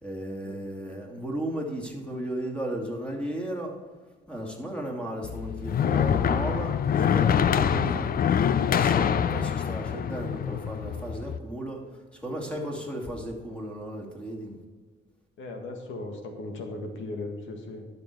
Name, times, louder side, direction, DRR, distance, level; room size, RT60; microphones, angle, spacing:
voice 1, 0.0-3.8 4.3-8.1 8.7-14.6, right 1 dB, 5° left, -1 dB, 2.7 m, -35 dB
sound 1, 5.2-11.4, left 8 dB, 50° left, 0.5 m, -25 dB
voice 2, 15.4-17.9, left 2 dB, 75° left, 4 dB, 1.8 m, -37 dB
11.0 x 6.8 x 4.7 m, 1.4 s
cardioid pair, 90°, 20 cm